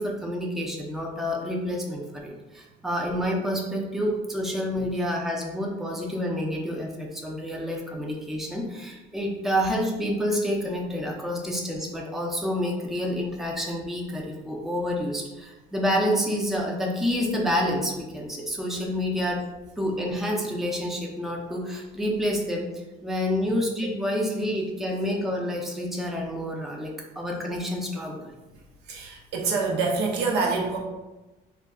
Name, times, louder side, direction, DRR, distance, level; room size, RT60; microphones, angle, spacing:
voice 1, 0.0-19.4 19.8-28.3, equal, ahead, -1 dB, 0.4 m, -28 dB
voice 2, 28.9-30.8, right 4 dB, 80° right, 0 dB, 0.6 m, -26 dB
2.2 x 2.1 x 3.6 m, 1.1 s
cardioid pair, 110°, 17 cm